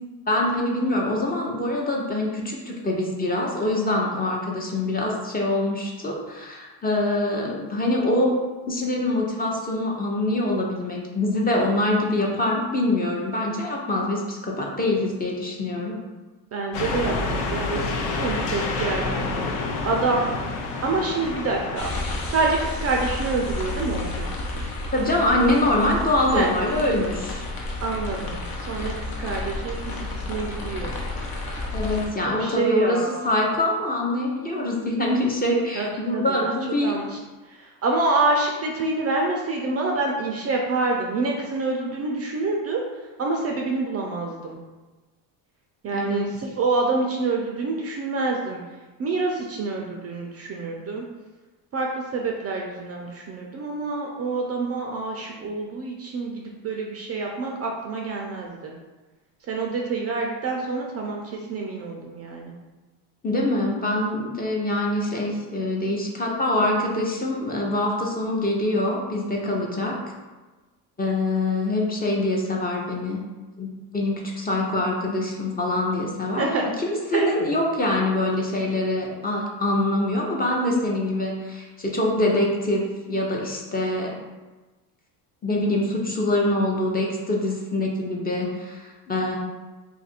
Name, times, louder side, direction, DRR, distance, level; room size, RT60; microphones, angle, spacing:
voice 1, 0.3-8.4 8.7-16.0 24.9-27.4 31.7-37.0 45.9-46.3 63.2-70.0 71.0-73.2 73.6-76.5 76.8-84.1 85.4-89.4, left 1 dB, 20° left, -1 dB, 0.6 m, -24 dB
voice 2, 16.5-19.3 19.8-20.2 20.8-22.0 22.3-24.3 26.3-26.5 27.8-28.4 28.7-29.0 29.2-30.9 32.4-33.2 35.8-36.5 36.8-37.2 37.5-42.8 43.2-44.6 45.8-48.6 49.0-51.0 51.7-51.9 52.1-58.7 59.5-61.2 61.5-62.5 76.4-76.6 77.1-77.3, right 3 dB, 35° right, 0 dB, 0.4 m, -27 dB
sound 1, 16.7-21.8, left 3 dB, 80° left, 0.8 m, -28 dB
sound 2, 21.8-32.1, left 2 dB, 50° left, 0.9 m, -31 dB
2.7 x 2.5 x 4.2 m, 1.2 s
supercardioid pair, 105°, 47 cm